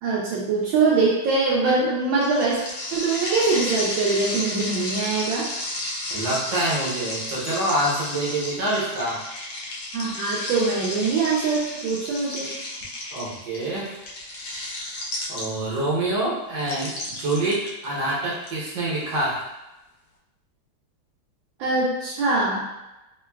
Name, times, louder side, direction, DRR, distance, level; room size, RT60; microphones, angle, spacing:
voice 1, 0.0-2.6 2.9-5.5 9.9-12.5 21.6-22.7, right 3 dB, 80° right, -6 dB, 1.3 m, -23 dB
sound 1, 2.2-15.8 16.6-18.5, left 2 dB, 70° left, 1.0 m, -32 dB
voice 2, 6.1-9.2 13.1-14.0 15.3-19.4, right 1 dB, 60° right, -6 dB, 1.4 m, -26 dB
3.7 x 2.2 x 2.2 m, 0.98 s
omnidirectional pair, 2.1 m